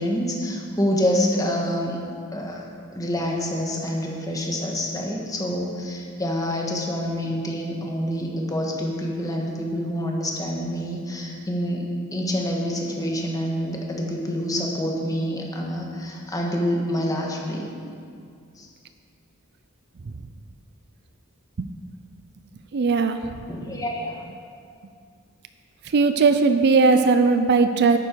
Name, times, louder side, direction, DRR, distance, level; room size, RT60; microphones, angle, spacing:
voice 1, 0.0-2.0 2.3-2.6 2.9-17.7 18.6-18.7 23.5-24.2, equal, 15° left, -1 dB, 1.5 m, -27 dB
voice 2, 22.7-23.2 25.9-28.0, right 4 dB, 50° right, 9 dB, 0.4 m, -18 dB
11.5 x 9.1 x 4.6 m, 2.3 s
head